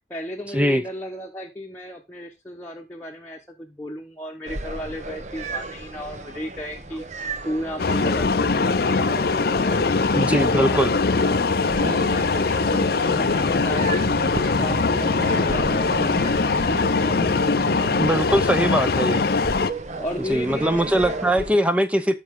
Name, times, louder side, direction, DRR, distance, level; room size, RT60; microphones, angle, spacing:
voice 1, 0.1-11.0 11.8-18.6 20.0-21.5, left 1 dB, 10° left, 1.1 m, -34 dB
sound 1, 4.5-21.6, right 3 dB, 40° right, 1.0 m, -35 dB
sound 2, 7.8-19.7, left 4 dB, 55° left, 0.5 m, -22 dB
voice 2, 10.1-10.9 18.0-19.2 20.3-22.2, right 1 dB, 5° right, 0.7 m, -21 dB
sound 3, 11.6-18.0, right 1 dB, 85° right, 2.5 m, -33 dB
12.5 x 5.8 x 3.7 m
head